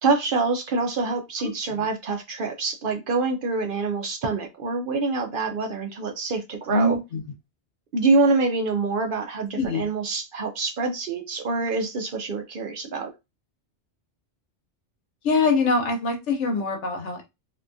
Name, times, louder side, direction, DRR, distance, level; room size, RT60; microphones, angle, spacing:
voice 1, 0.0-7.0 7.9-13.1, right 3 dB, 60° right, 0.6 m, -25 dB
voice 2, 6.7-7.2 9.6-9.9 15.2-17.3, left 3 dB, 80° left, 1.1 m, -24 dB
2.7 x 2.3 x 2.6 m
omnidirectional pair, 1.2 m